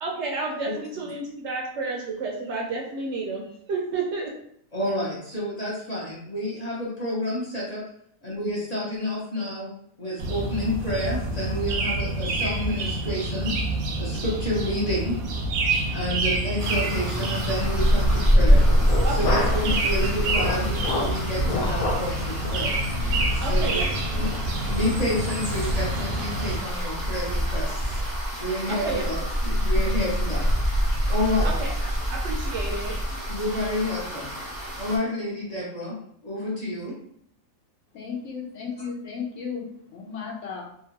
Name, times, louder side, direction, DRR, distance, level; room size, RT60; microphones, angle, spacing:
voice 1, 0.0-4.3 19.0-20.0 23.4-24.3 28.7-29.5 31.4-33.0, right 3 dB, 65° right, -1 dB, 0.8 m, -31 dB
voice 2, 4.7-7.8 8.2-9.7 10.0-13.6 14.0-15.2 15.9-18.6 19.1-22.8 23.3-23.8 24.2-28.0 28.4-29.1 29.4-30.5 31.1-31.5 33.3-34.3 34.8-36.0 36.2-37.0, left 1 dB, 40° left, -6 dB, 0.6 m, -29 dB
sound 1, 10.2-26.6, right 2 dB, 90° right, 1.0 m, -28 dB
sound 2, 16.6-35.0, equal, 25° right, 0.5 m, -25 dB
sound 3, 18.6-19.7 20.1-22.1 22.4-22.6 23.1-23.3 23.7-23.8 24.2-24.4, left 2 dB, 90° left, 1.1 m, -29 dB
voice 3, 37.9-40.7, left 6 dB, 70° left, -1 dB, 0.9 m, -34 dB
2.8 x 2.3 x 2.8 m, 0.67 s
omnidirectional pair, 1.5 m